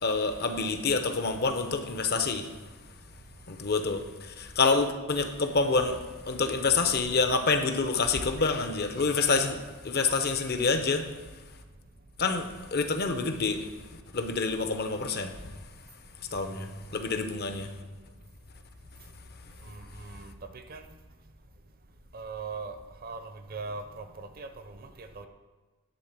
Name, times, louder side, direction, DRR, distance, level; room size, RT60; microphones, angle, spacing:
voice 1, 0.0-2.5 3.5-6.0 6.3-9.6 9.8-11.1 12.2-13.7 14.1-15.3 16.3-16.7 16.9-17.7, left 4 dB, 45° left, 7 dB, 0.7 m, -27 dB
voice 2, 19.7-20.8 22.1-22.7 23.0-23.2 23.5-25.3, right 4 dB, 40° right, 8 dB, 0.7 m, -40 dB
11.0 x 3.8 x 7.4 m, 1.3 s
head